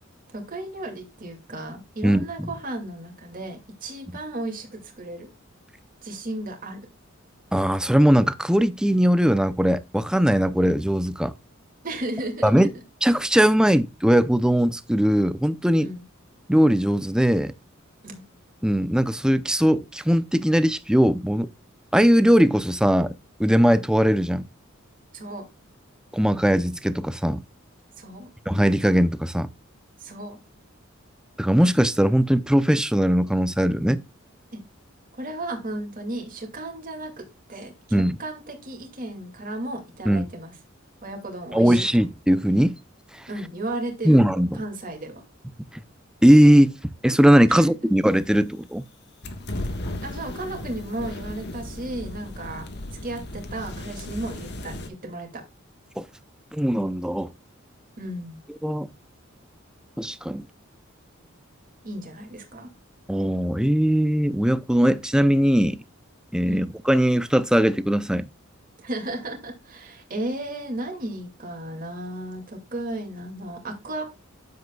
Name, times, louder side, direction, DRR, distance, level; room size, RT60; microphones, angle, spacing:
voice 1, 0.3-5.3 6.0-6.8 11.8-12.7 15.8-16.0 18.0-18.2 25.1-25.5 28.0-28.3 30.0-30.4 34.5-34.6 35.1-37.1 37.5-40.5 41.0-42.0 43.3-44.2 44.5-45.2 47.5-47.6 50.0-52.6 53.0-55.4 58.0-58.4 61.8-62.7 66.4-66.7 68.8-74.0, right 1 dB, 45° right, 2.3 m, -34 dB
voice 2, 2.0-2.5 7.5-11.3 12.4-12.7 13.0-15.9 16.5-17.5 18.6-21.5 21.9-23.1 23.4-24.5 26.1-27.4 28.5-29.5 31.4-34.0 37.9-38.2 40.1-40.3 41.5-42.8 44.0-44.6 46.2-46.7 47.0-48.9 56.0-56.1 56.5-57.3 58.6-58.9 60.0-60.5 63.1-65.8 66.3-68.3, equal, 5° right, 0.5 m, -20 dB
sound 1, 49.2-54.9, left 1 dB, 55° left, 1.4 m, -35 dB
9.4 x 7.6 x 2.3 m
head